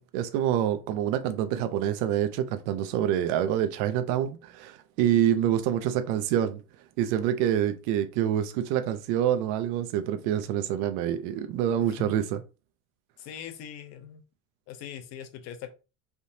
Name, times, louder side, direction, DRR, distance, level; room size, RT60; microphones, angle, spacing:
voice 1, 0.1-6.6 7.0-12.4, right 10 dB, 85° right, 0.5 m, -26 dB
voice 2, 13.2-14.2 14.7-15.7, left 9 dB, 45° left, 0.6 m, -41 dB
3.4 x 2.8 x 2.6 m
cardioid pair, 170°, 36 cm